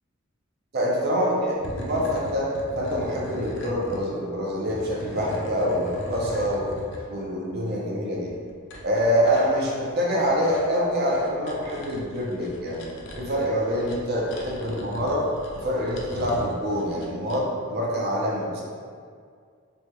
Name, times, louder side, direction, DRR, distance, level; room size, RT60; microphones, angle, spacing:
voice 1, 0.7-6.6 7.1-8.3 8.8-12.9 13.2-15.3 15.5-18.6, equal, 50° right, -3 dB, 0.5 m, -25 dB
sound 1, 1.5-4.0 4.4-7.0 8.3-17.4, left 1 dB, 60° left, 0.4 m, -38 dB
3.2 x 2.3 x 2.9 m, 2.1 s
head